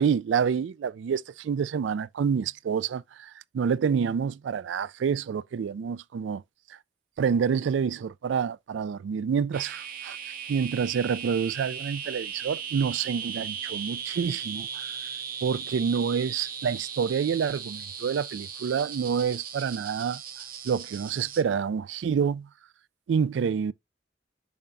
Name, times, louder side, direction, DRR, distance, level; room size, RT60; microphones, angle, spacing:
voice 1, 0.0-6.4 6.7-6.8 7.2-10.2 10.5-14.9 15.4-20.2 20.6-22.5 23.1-23.7, right 6 dB, 80° right, 0.3 m, -28 dB
sound 1, 9.5-21.4, right 7 dB, 50° right, 0.8 m, -37 dB
7.0 x 5.8 x 2.5 m
head